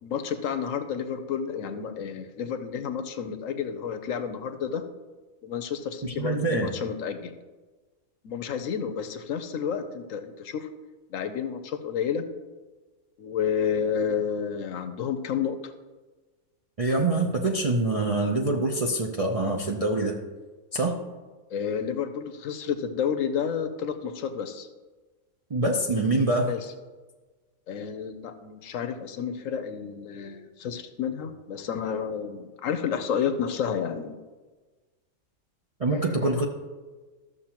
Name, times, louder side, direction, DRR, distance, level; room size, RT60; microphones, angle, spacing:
voice 1, 0.0-4.8 5.4-7.3 8.2-10.7 11.1-12.3 13.2-15.7 21.5-24.7 26.5-26.7 27.7-34.2 35.9-36.3, left 7 dB, 70° left, 9 dB, 1.0 m, -30 dB
voice 2, 6.0-6.7 16.8-20.2 20.7-21.0 25.5-26.5 35.8-36.5, right 2 dB, 45° right, -1 dB, 0.4 m, -25 dB
13.0 x 6.7 x 2.9 m, 1.3 s
omnidirectional pair, 1.5 m